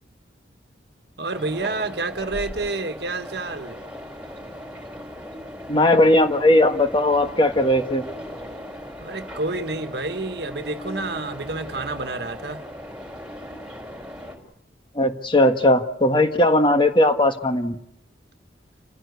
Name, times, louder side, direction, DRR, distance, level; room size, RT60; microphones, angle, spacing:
voice 1, 1.2-3.8 9.0-12.6, right 3 dB, 60° right, 8 dB, 1.5 m, -29 dB
sound 1, 1.3-14.4, equal, 5° right, 4.8 m, -38 dB
voice 2, 5.7-8.0 14.9-17.8, left 1 dB, 25° left, 7 dB, 1.5 m, -18 dB
29.0 x 15.5 x 8.2 m, 0.77 s
head